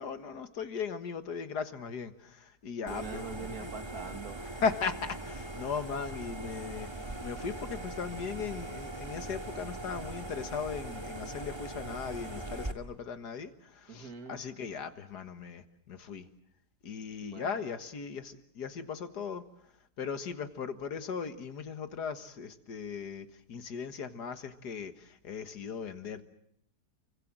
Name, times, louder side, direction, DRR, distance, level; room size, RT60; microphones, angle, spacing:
voice 1, 0.0-3.3 3.6-3.7 4.6-16.3 16.8-19.4 20.0-26.2, left 6 dB, 80° left, 10 dB, 2.1 m, -38 dB
voice 2, 2.8-4.5 13.9-14.4 17.2-17.6, right 5 dB, 65° right, 8 dB, 2.3 m, -43 dB
sound 1, 2.9-12.7, right 2 dB, 15° right, 1.8 m, -41 dB
29.5 x 24.5 x 7.6 m, 0.71 s
omnidirectional pair, 1.7 m